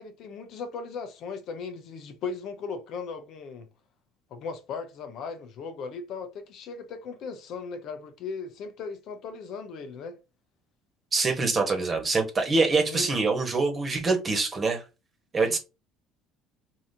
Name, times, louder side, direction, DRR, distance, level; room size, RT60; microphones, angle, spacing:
voice 1, 0.0-3.7 4.3-10.2 12.9-13.1 15.5-15.6, left 5 dB, 60° left, 0.8 m, -37 dB
voice 2, 11.1-14.8 15.3-15.6, right 3 dB, 30° right, 1.3 m, -25 dB
3.9 x 2.8 x 2.7 m
supercardioid pair, 100°, 0 cm